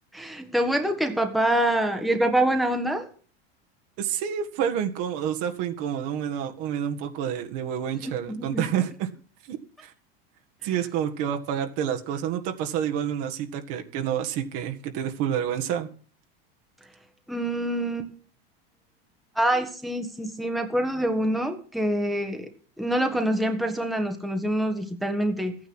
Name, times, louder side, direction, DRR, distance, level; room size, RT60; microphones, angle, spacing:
voice 1, 0.1-3.1 8.3-8.6 17.3-18.1 19.3-22.5 22.8-25.6, right 1 dB, ahead, 4 dB, 1.4 m, -25 dB
voice 2, 4.0-9.1 9.5-9.9 10.6-15.9, right 9 dB, 50° right, 5 dB, 1.8 m, -28 dB
14.0 x 9.5 x 6.2 m, 0.42 s
supercardioid pair, 140°, 30 cm